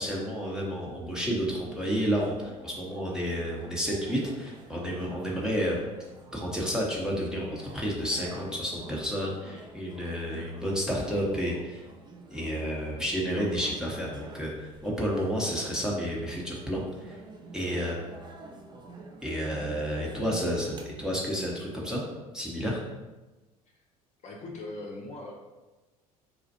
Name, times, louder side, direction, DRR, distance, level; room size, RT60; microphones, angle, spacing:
voice 1, 0.0-5.8 6.3-11.8 12.3-17.2 17.5-18.1 19.2-22.0 22.3-22.8, equal, 5° right, -3 dB, 0.8 m, -31 dB
sound 1, 1.8-21.5, right 3 dB, 25° right, 0.5 m, -48 dB
voice 2, 24.2-25.3, left 2 dB, 35° left, -1 dB, 0.6 m, -40 dB
4.2 x 2.4 x 2.7 m, 1.1 s
figure-of-eight pair, 65°, 19 cm